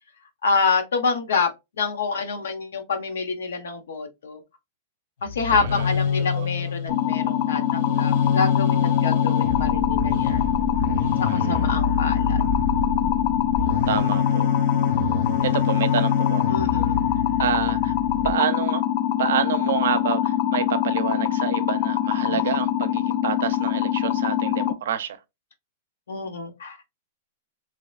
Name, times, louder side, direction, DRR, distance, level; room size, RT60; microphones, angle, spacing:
voice 1, 0.4-1.5 1.8-4.4 5.3-10.5 11.3-12.4 13.0-13.2 16.5-17.1 22.3-22.7 26.1-26.8, left 4 dB, 90° left, 0.8 m, -27 dB
sound 1, 5.2-18.3, left 5 dB, 70° left, 1.7 m, -26 dB
voice 2, 5.5-5.9 6.4-6.5 11.3-11.4 13.9-14.5 15.4-16.5 17.4-17.9 18.2-18.8 19.2-25.2, right 9 dB, 75° right, 0.5 m, -28 dB
sound 2, 6.9-24.7, left 11 dB, 45° left, 0.4 m, -24 dB
3.1 x 2.8 x 2.3 m
hypercardioid pair, 140°, 0 cm